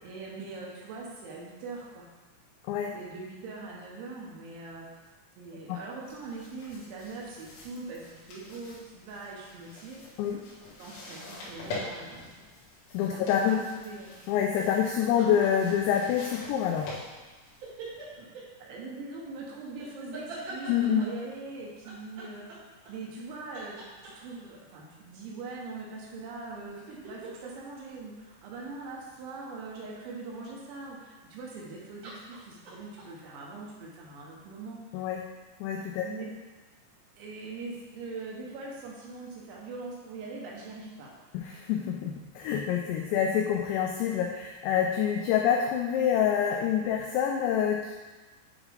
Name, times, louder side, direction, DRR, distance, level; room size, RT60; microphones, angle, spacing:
voice 1, 0.0-2.1 2.9-4.9 5.4-10.0 10.8-12.3 13.1-14.2 18.1-18.3 18.6-22.5 22.9-35.0 36.0-36.3 37.2-41.1, right 3 dB, 75° right, -3 dB, 3.1 m, -42 dB
sound 1, 6.0-18.1, left 2 dB, 70° left, 3.7 m, -45 dB
voice 2, 12.9-13.6 14.3-16.9 20.7-21.1 34.9-35.2 35.6-36.3 41.3-47.9, left 8 dB, 90° left, 1 dB, 2.5 m, -27 dB
sound 2, 15.0-16.2 17.6-18.5 19.8-21.2 21.8-23.2 23.5-24.5 26.3-28.9 31.3-31.7 32.0-33.1, right 2 dB, 60° right, 2.3 m, -44 dB
9.0 x 3.6 x 3.4 m, 1.3 s
omnidirectional pair, 5.7 m